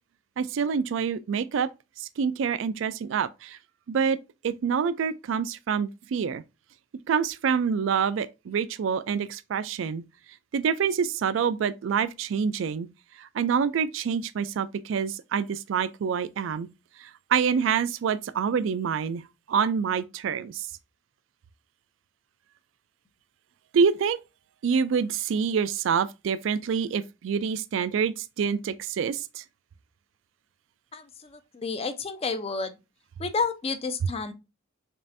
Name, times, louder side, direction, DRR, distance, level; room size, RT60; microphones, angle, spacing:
voice 1, 0.4-1.7 2.0-3.6 3.9-6.4 7.1-10.0 10.5-12.9 13.2-16.7 17.0-19.2 19.5-20.7 23.7-24.2 24.6-29.4, right 6 dB, 70° right, 0.3 m, -26 dB
voice 2, 30.9-32.8 33.2-34.3, left 4 dB, 30° left, 0.5 m, -31 dB
5.3 x 2.5 x 2.6 m
head